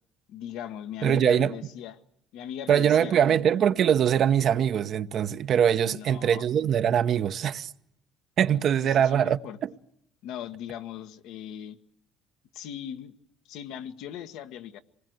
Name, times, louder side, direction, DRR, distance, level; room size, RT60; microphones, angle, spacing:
voice 1, 0.3-2.0 2.3-3.4 5.7-6.4 8.4-9.6 10.2-11.8 12.5-13.1 13.5-14.8, left 10 dB, 80° left, 1.3 m, -39 dB
voice 2, 1.0-1.6 2.7-7.7 8.4-9.7, right 9 dB, 55° right, 0.9 m, -23 dB
26.0 x 20.0 x 7.9 m
cardioid pair, 100°, 0 cm